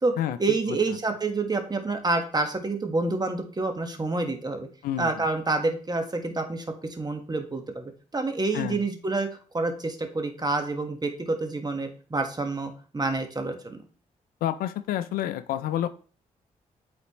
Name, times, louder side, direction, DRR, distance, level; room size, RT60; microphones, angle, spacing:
voice 1, 0.4-4.7 5.0-9.3 9.5-13.8, right 3 dB, 25° right, 5 dB, 1.4 m, -28 dB
voice 2, 4.8-5.3 8.5-8.8 14.4-15.9, left 12 dB, 85° left, 12 dB, 0.4 m, -29 dB
8.2 x 4.2 x 3.0 m, 0.40 s
supercardioid pair, 50°, 15 cm